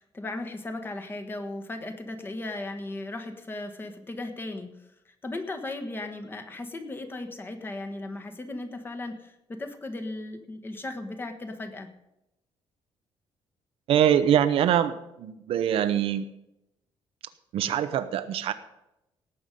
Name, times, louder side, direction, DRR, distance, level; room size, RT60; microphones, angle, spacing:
voice 1, 0.0-11.9, left 2 dB, 20° left, 6 dB, 1.4 m, -37 dB
voice 2, 13.9-16.2 17.5-18.5, right 10 dB, 70° right, 11 dB, 0.8 m, -23 dB
18.0 x 8.0 x 5.3 m, 0.88 s
cardioid pair, 150°, 10 cm